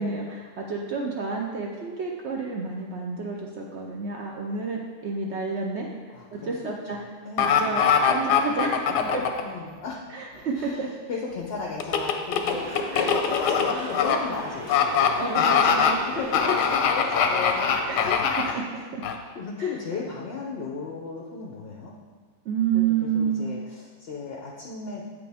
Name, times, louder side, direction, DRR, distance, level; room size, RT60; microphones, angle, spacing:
voice 1, 0.0-7.0 7.4-9.2 10.1-10.9 12.9-13.2 15.2-16.0 17.9-18.2 18.5-18.6 18.9-19.0 19.6-19.7 22.5-23.5, right 5 dB, 70° right, 0 dB, 0.6 m, -30 dB
voice 2, 6.1-6.7 7.2-7.6 8.9-9.1 9.4-10.0 10.5-15.5 16.1-17.7 18.0-18.2 18.4-18.6 19.3-21.9 22.7-25.0, left 5 dB, 60° left, -2 dB, 0.6 m, -35 dB
sound 1, 7.4-9.4 11.8-14.2 14.7-15.1 15.4-15.9 16.3-18.5 19.0-19.1, left 7 dB, 90° left, 1.2 m, -22 dB
sound 2, 12.4-18.1, left 1 dB, 15° right, 1.2 m, -37 dB
8.2 x 5.1 x 3.4 m, 1.5 s
omnidirectional pair, 1.8 m